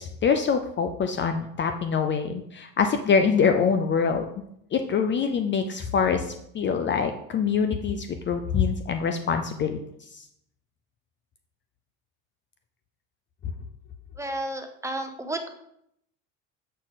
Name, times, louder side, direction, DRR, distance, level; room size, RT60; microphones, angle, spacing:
voice 1, 0.0-4.3 4.7-9.8 10.1-10.2, left 6 dB, 30° left, 7 dB, 0.6 m, -24 dB
voice 2, 14.2-15.6, right 1 dB, 10° right, 5 dB, 0.9 m, -32 dB
7.5 x 4.6 x 4.1 m, 0.74 s
supercardioid pair, 105°, 36 cm